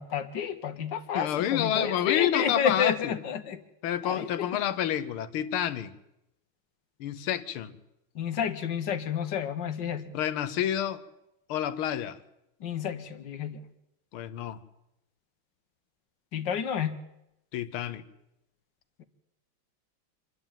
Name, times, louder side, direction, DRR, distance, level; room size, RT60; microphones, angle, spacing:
voice 1, 0.0-3.6 4.0-4.6 8.1-10.2 12.6-13.7 16.3-17.0 19.0-19.1, left 8 dB, 60° left, 10 dB, 1.7 m, -30 dB
voice 2, 1.1-3.1 3.8-5.9 7.0-7.8 10.1-11.0 11.5-12.2 14.1-14.6 17.5-18.0, left 10 dB, 85° left, 12 dB, 1.8 m, -29 dB
26.0 x 11.5 x 9.0 m, 0.86 s
omnidirectional pair, 2.3 m